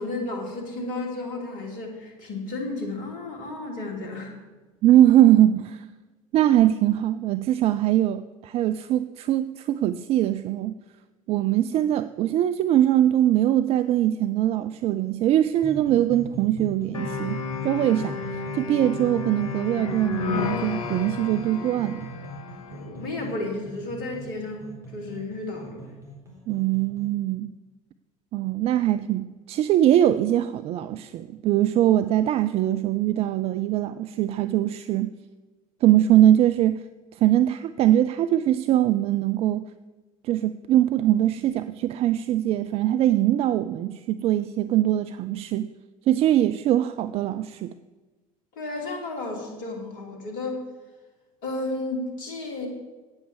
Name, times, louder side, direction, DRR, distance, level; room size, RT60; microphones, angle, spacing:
voice 1, 0.0-4.3 22.7-25.9 48.5-50.6 51.4-52.7, left 2 dB, 50° left, 2 dB, 2.8 m, -33 dB
voice 2, 4.8-5.9 6.3-10.8 11.3-18.2 18.5-22.1 26.5-27.5 28.3-35.1 35.8-36.9 37.1-39.6 40.2-45.7 46.1-47.7, right 12 dB, 35° right, 12 dB, 0.4 m, -22 dB
sound 1, 15.5-27.1, right 1 dB, 15° right, 4.1 m, -40 dB
sound 2, 16.9-22.9, left 6 dB, 75° left, 0.8 m, -32 dB
8.9 x 8.6 x 7.1 m, 1.2 s
figure-of-eight pair, 70°, 18 cm